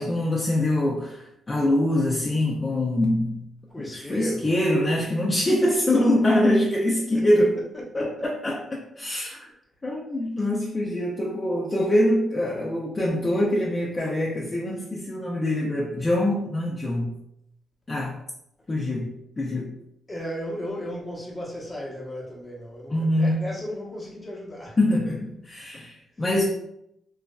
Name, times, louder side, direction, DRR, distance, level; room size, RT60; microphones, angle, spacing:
voice 1, 0.0-3.4 3.9-7.5 7.9-9.5 9.8-17.1 17.9-18.2 18.7-19.7 22.9-23.4 24.8-26.4, left 1 dB, 25° left, -4 dB, 0.5 m, -24 dB
voice 2, 3.7-4.5 7.1-7.3 7.9-8.1 20.1-24.8, equal, 10° left, -5 dB, 1.0 m, -35 dB
3.0 x 2.4 x 2.3 m, 0.76 s
cardioid pair, 105°, 0 cm